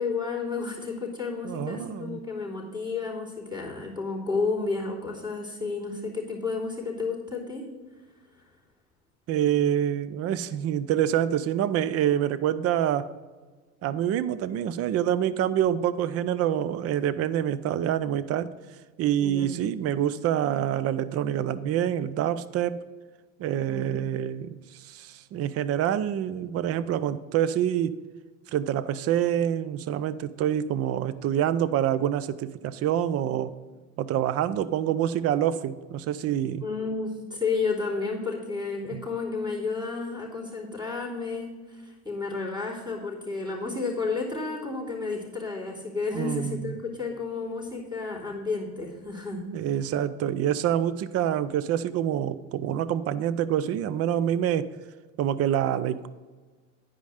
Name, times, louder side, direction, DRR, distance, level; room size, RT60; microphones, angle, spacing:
voice 1, 0.0-7.7 19.2-19.5 23.7-24.1 36.6-49.5, left 4 dB, 10° right, -2 dB, 3.2 m, -31 dB
voice 2, 1.4-2.2 9.3-13.1 13.8-18.5 19.0-22.8 23.4-28.0 28.5-33.5 34.0-36.7 38.9-39.0 46.1-46.8 49.5-54.7 55.2-56.1, right 10 dB, 40° right, 15 dB, 0.5 m, -26 dB
10.5 x 5.2 x 4.9 m, 1.4 s
supercardioid pair, 95°, 40 cm